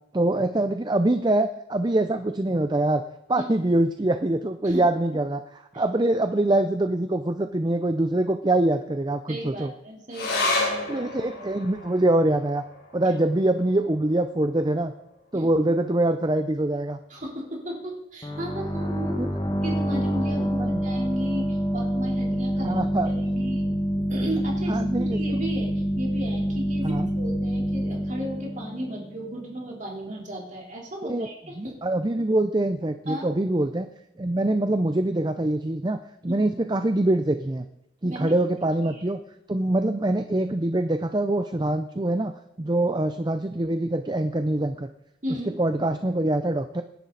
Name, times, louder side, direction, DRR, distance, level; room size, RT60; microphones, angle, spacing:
voice 1, 0.1-3.0 3.3-5.4 5.7-9.7 10.9-12.6 12.9-14.9 15.3-17.0 19.2-19.3 20.6-20.8 22.6-23.1 24.7-25.2 26.8-27.1 31.0-31.3 31.6-33.9 34.2-36.0 36.2-37.6 38.0-39.2 39.5-42.3 42.6-44.9 45.6-46.8, right 1 dB, 20° right, 9 dB, 0.5 m, -24 dB
voice 2, 9.3-11.1 13.0-13.2 15.3-15.5 17.1-19.3 19.6-23.7 24.1-31.8 33.1-33.3 36.3-36.4 38.0-38.4 38.8-39.0 45.2-45.5, equal, 40° right, -2 dB, 3.6 m, -35 dB
sound 1, 10.1-16.9 17.2-17.3 17.6-18.3 18.9-19.0, left 2 dB, 60° left, 7.6 m, -33 dB
sound 2, 18.2-29.7, equal, 20° left, 1.7 m, -27 dB
25.5 x 10.5 x 4.0 m, 0.83 s
head